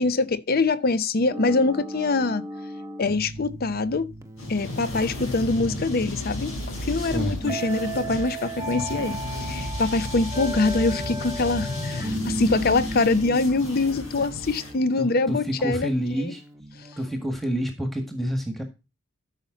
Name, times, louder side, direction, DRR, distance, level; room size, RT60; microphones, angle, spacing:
voice 1, 0.0-2.4 3.0-4.1 4.5-15.9 16.2-16.3, left 3 dB, 45° left, 0.6 m, -24 dB
sound 1, 1.3-17.3, right 1 dB, 15° right, 0.9 m, -36 dB
sound 2, 4.4-14.7, left 1 dB, 80° left, 3.8 m, -33 dB
voice 2, 7.0-7.5 15.0-16.4 17.0-18.6, equal, ahead, 1.7 m, -28 dB
13.5 x 5.8 x 3.9 m
head